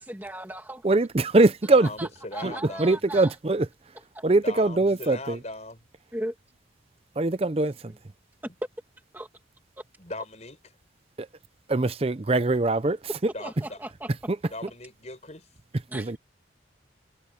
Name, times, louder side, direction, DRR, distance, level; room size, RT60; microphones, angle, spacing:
voice 1, 0.0-0.8 2.0-3.4 6.1-6.3 7.9-8.0 9.1-9.3 13.4-14.1 14.4-14.5 15.9-16.1, right 1 dB, 10° right, 2.1 m, -37 dB
voice 2, 0.8-1.9 2.4-2.5 2.8-3.7 4.2-5.4 7.2-7.7 11.7-13.0 15.9-16.2, right 2 dB, 30° right, 0.5 m, -22 dB
voice 3, 1.7-3.0 4.4-5.8 10.0-10.6 13.3-13.8 14.5-15.5, left 2 dB, 35° left, 5.6 m, -39 dB
head